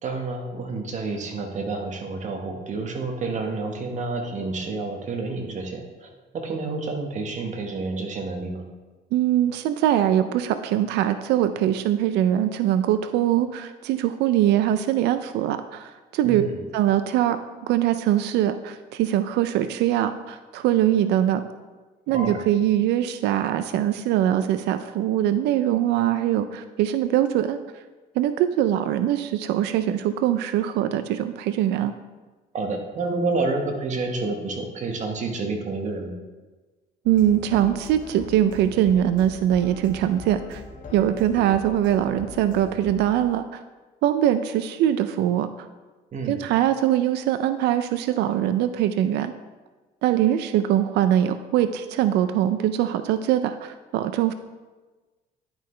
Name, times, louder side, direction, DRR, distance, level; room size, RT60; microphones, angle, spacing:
voice 1, 0.0-8.6 16.2-16.6 22.1-22.4 32.5-36.2 46.1-46.4, right 3 dB, 45° right, 3 dB, 1.3 m, -29 dB
voice 2, 9.1-16.5 16.7-17.4 17.6-21.4 22.1-27.6 28.2-31.9 37.1-40.6 40.9-43.6 44.0-45.5 46.3-49.3 50.0-54.3, right 11 dB, 85° right, 11 dB, 0.4 m, -22 dB
sound 1, 37.1-43.1, left 3 dB, 50° left, 1.4 m, -40 dB
10.5 x 5.6 x 3.2 m, 1.3 s
cardioid pair, 110°, 17 cm